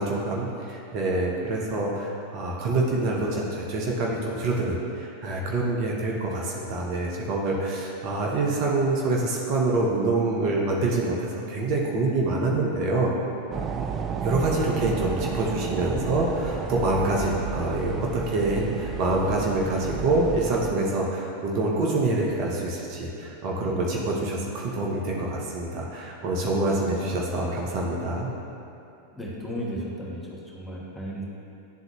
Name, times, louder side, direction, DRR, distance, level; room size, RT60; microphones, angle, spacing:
voice 1, 0.0-13.1 14.2-28.3, right 2 dB, 40° right, -2 dB, 0.9 m, -26 dB
sound 1, 13.5-20.7, right 6 dB, 25° right, 0.3 m, -32 dB
voice 2, 26.9-27.6 29.2-31.2, equal, 5° left, -5 dB, 1.2 m, -34 dB
10.5 x 3.9 x 3.0 m, 2.7 s
figure-of-eight pair, 90°, 0 cm